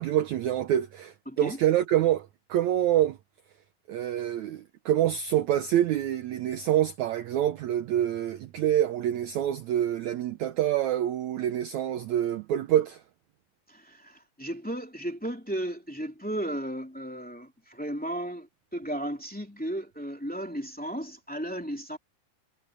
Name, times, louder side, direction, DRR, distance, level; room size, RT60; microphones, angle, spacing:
voice 1, 0.0-3.2 3.9-13.0, right 11 dB, 75° right, 1.8 m, -26 dB
voice 2, 1.3-1.6 13.7-22.0, right 1 dB, 5° left, 2.0 m, -35 dB
omnidirectional pair, 4.2 m